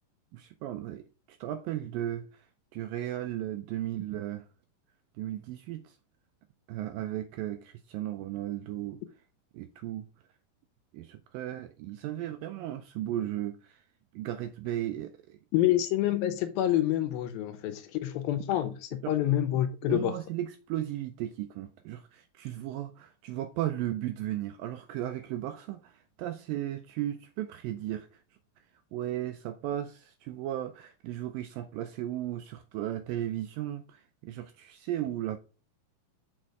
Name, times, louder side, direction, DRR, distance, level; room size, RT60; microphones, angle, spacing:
voice 1, 0.3-2.5 2.7-4.5 5.2-6.0 6.7-9.0 9.5-10.1 10.9-13.8 14.1-15.4 19.9-28.1 28.9-35.4, right 13 dB, 85° right, 2.0 m, -35 dB
voice 2, 15.5-20.2, left 13 dB, 80° left, 2.3 m, -27 dB
6.5 x 4.3 x 4.7 m
omnidirectional pair, 4.4 m